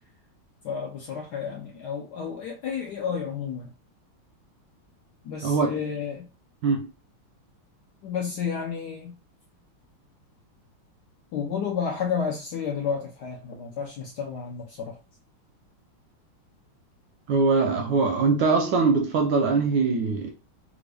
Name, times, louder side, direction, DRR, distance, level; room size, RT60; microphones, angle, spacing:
voice 1, 0.6-3.7 5.2-6.3 8.0-9.1 11.3-15.0, left 6 dB, 75° left, 1.0 m, -31 dB
voice 2, 5.4-5.8 6.6-6.9 17.3-20.3, right 4 dB, 75° right, 1.1 m, -22 dB
3.4 x 2.5 x 3.3 m
omnidirectional pair, 2.3 m